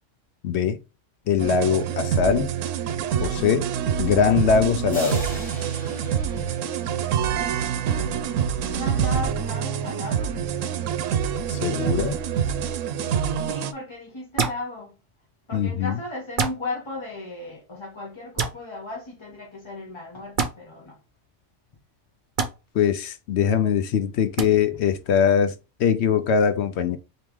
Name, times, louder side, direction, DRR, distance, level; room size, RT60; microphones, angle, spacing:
voice 1, 0.4-0.8 1.3-2.5 3.2-3.7 4.0-5.3 11.5-12.2 15.5-16.0 22.7-25.5 25.8-27.0, left 7 dB, 70° left, 0.8 m, -22 dB
sound 1, 1.4-13.7, right 8 dB, 85° right, 0.9 m, -26 dB
sound 2, 4.9-7.6, equal, 5° left, 1.6 m, -40 dB
voice 2, 8.6-10.4 13.3-14.9 15.5-21.0, left 2 dB, 25° left, 0.8 m, -36 dB
sound 3, 14.4-14.6 16.4-16.6 18.4-18.5 20.4-20.5 22.4-22.5 24.4-24.5, right 5 dB, 45° right, 0.8 m, -24 dB
3.5 x 3.0 x 4.5 m
omnidirectional pair, 1.3 m